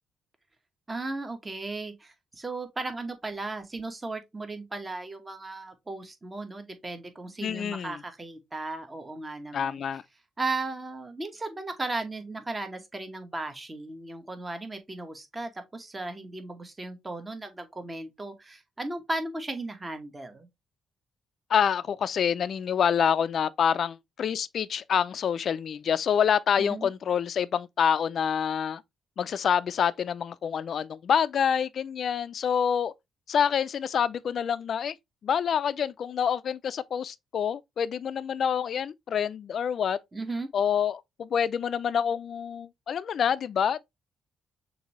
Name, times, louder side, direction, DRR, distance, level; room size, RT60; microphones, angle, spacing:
voice 1, 0.9-9.8 10.4-20.5 26.6-26.9 40.1-40.5, right 2 dB, 20° right, 1.1 m, -36 dB
voice 2, 7.4-8.0 9.5-10.0 21.5-28.8 29.2-32.9 33.3-35.0 35.2-40.0 40.5-43.8, left 8 dB, 60° left, 0.4 m, -27 dB
6.4 x 2.7 x 3.0 m
cardioid pair, 90°, 0 cm